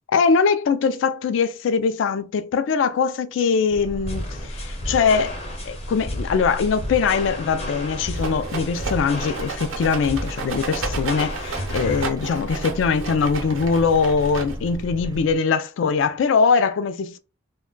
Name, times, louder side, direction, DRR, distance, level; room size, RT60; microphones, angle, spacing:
voice 1, 0.1-5.4 5.6-17.2, left 5 dB, 70° left, 0.3 m, -22 dB
sound 1, 3.7-15.4, equal, 20° right, 0.3 m, -35 dB
sound 2, 4.1-12.1, left 1 dB, 35° left, 0.6 m, -33 dB
Rattle, 8.1-14.8, right 4 dB, 85° right, 0.6 m, -33 dB
2.2 x 2.2 x 3.7 m
head